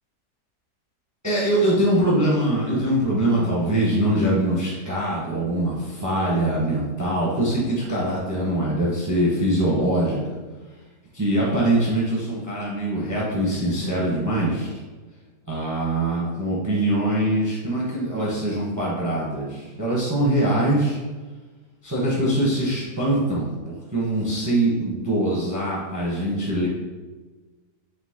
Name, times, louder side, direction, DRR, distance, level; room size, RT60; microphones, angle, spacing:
voice 1, 1.2-10.4 11.1-14.7 15.5-21.0 21.8-26.7, right 1 dB, 25° right, -5 dB, 0.4 m, -23 dB
3.9 x 2.8 x 3.6 m, 1.3 s
omnidirectional pair, 1.8 m